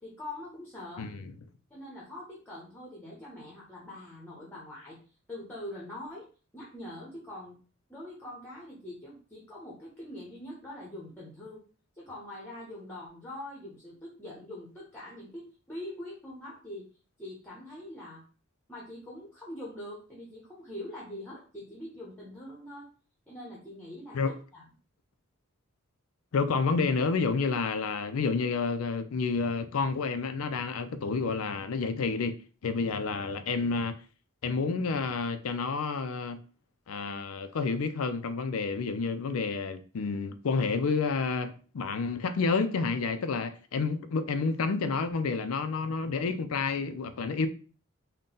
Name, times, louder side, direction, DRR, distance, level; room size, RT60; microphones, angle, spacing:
voice 1, 0.0-1.1 1.7-5.0 5.3-6.3 6.5-7.6 7.9-11.6 11.9-16.9 17.2-18.2 18.7-22.9 23.3-24.7, left 1 dB, 10° left, 0.9 m, -43 dB
voice 2, 26.3-32.4 32.6-34.0 34.4-36.4 36.9-47.5, left 4 dB, 85° left, 0.4 m, -29 dB
3.8 x 2.2 x 3.8 m
head